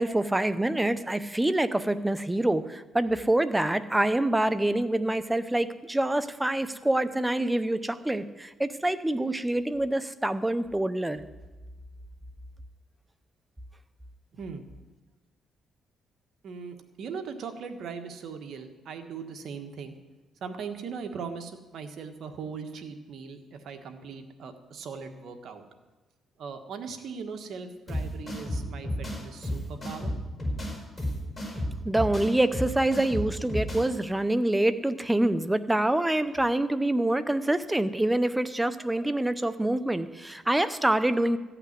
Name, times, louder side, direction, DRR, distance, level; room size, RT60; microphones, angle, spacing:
voice 1, 0.0-11.2 31.8-41.4, right 1 dB, 10° right, 13 dB, 0.7 m, -26 dB
voice 2, 14.3-14.6 16.4-20.0 20.4-25.6 26.4-30.1, right 5 dB, 65° right, 6 dB, 1.5 m, -39 dB
sound 1, 27.9-33.9, equal, 20° left, 5.0 m, -32 dB
14.5 x 5.9 x 9.5 m, 1.2 s
cardioid pair, 90°, 0 cm